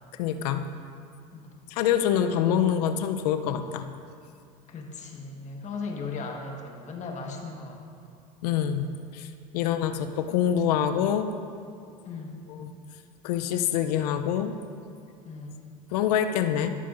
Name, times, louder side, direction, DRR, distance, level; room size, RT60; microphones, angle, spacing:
voice 1, 0.2-0.6 1.7-3.9 8.4-9.3 9.5-11.3 12.6-12.7 13.2-14.5 15.9-16.7, left 9 dB, 80° left, 9 dB, 0.6 m, -25 dB
voice 2, 1.3-1.6 4.7-8.2 12.0-12.5 15.2-15.6, left 4 dB, 35° left, 1 dB, 1.4 m, -38 dB
14.5 x 6.8 x 2.6 m, 2.4 s
supercardioid pair, 95°, 20 cm